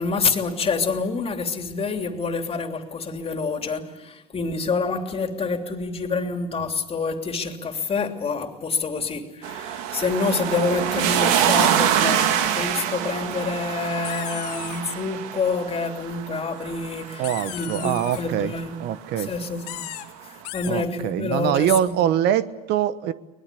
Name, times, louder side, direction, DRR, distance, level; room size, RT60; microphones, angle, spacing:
voice 1, 0.0-18.7 19.2-19.9 20.2-22.0, left 4 dB, 30° left, 5 dB, 3.2 m, -27 dB
sound 1, 9.4-18.5 19.8-19.9, right 9 dB, 75° right, 2.3 m, -25 dB
sound 2, 13.5-13.6 13.8-14.8 16.6-18.2 19.5-20.1 20.4-20.7, left 16 dB, 85° left, 1.9 m, -37 dB
voice 2, 17.2-18.5 18.8-19.3 20.6-23.1, right 10 dB, 60° right, 14 dB, 1.2 m, -23 dB
23.5 x 20.5 x 8.5 m, 1.1 s
supercardioid pair, 95°, 20 cm